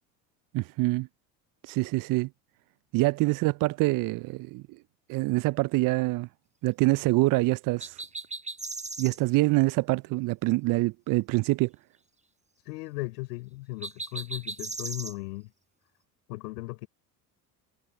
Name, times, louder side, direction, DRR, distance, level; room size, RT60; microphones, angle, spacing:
voice 1, 0.5-1.1 1.6-2.3 2.9-4.6 5.1-6.3 6.6-8.0 9.0-11.7, right 21 dB, 45° right, 0.5 m, -25 dB
sound 1, 7.8-9.2 13.8-15.1, right 3 dB, 15° right, 3.6 m, -37 dB
voice 2, 12.7-15.5 16.3-16.9, left 22 dB, 75° left, 4.6 m, -37 dB
hypercardioid pair, 70°, 49 cm